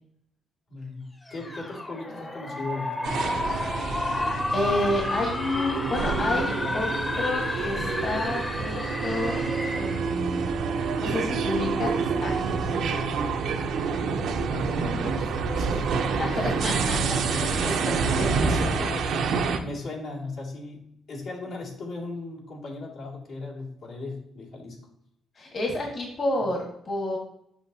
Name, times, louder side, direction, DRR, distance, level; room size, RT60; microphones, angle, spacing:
voice 1, 0.7-3.6 14.5-16.2 17.5-19.3 19.6-20.8 21.1-24.8, left 3 dB, 75° left, -5 dB, 2.3 m, -37 dB
sound 1, 1.3-10.1, left 2 dB, 20° left, 0.8 m, -31 dB
sound 2, 3.0-19.6, right 5 dB, 75° right, 0.7 m, -28 dB
voice 2, 4.5-6.9 7.2-9.4 9.7-13.0 16.2-17.5 18.2-18.3 19.2-19.3 25.3-27.2, left 2 dB, 45° left, 0 dB, 1.6 m, -30 dB
7.1 x 5.7 x 2.8 m, 0.75 s
cardioid pair, 90°, 0 cm